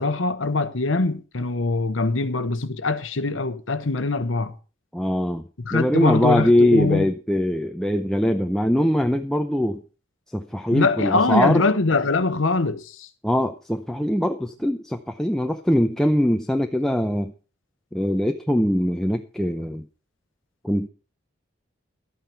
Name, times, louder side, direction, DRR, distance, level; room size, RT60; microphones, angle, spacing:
voice 1, 0.0-4.5 5.6-7.1 10.7-13.1, left 3 dB, 90° left, 0.9 m, -23 dB
voice 2, 4.9-5.4 5.7-9.8 10.3-11.6 13.2-17.3 17.9-19.8 20.6-20.9, equal, 5° left, 0.6 m, -22 dB
12.5 x 9.1 x 5.6 m
head